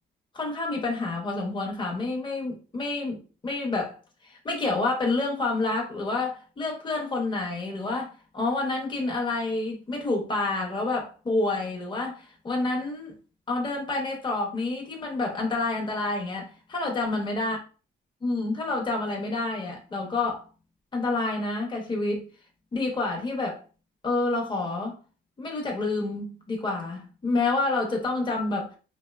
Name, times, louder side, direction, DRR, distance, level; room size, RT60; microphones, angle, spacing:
voice 1, 0.3-3.9 4.2-13.1 13.5-17.6 18.2-20.5 20.9-22.2 22.7-23.6 24.0-25.0 25.4-28.8, left 2 dB, 25° left, 0.7 m, -28 dB
2.7 x 2.1 x 2.2 m
cardioid pair, 90°, 20 cm